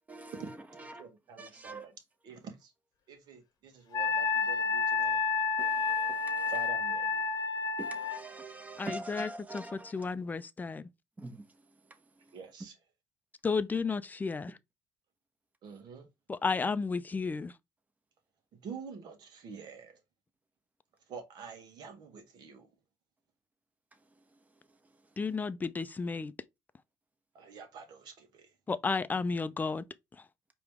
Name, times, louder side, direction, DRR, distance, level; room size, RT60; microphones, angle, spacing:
voice 1, 0.8-1.9 2.2-2.7 3.1-5.2 6.5-7.3 12.3-12.7 15.6-16.1 18.6-20.0 21.1-22.7 27.3-28.5, right 5 dB, 65° right, 1.5 m, -47 dB
voice 2, 1.4-1.8 5.6-6.5 7.8-9.9 11.2-11.4, right 2 dB, 20° right, 1.2 m, -43 dB
Wind instrument woodwind instrument, 3.9-8.2, left 5 dB, 55° left, 0.9 m, -30 dB
voice 3, 8.8-10.9 13.4-14.6 16.3-17.5 25.2-26.3 28.7-29.8, left 4 dB, 20° left, 0.5 m, -33 dB
4.8 x 3.0 x 3.6 m
supercardioid pair, 75°, 8 cm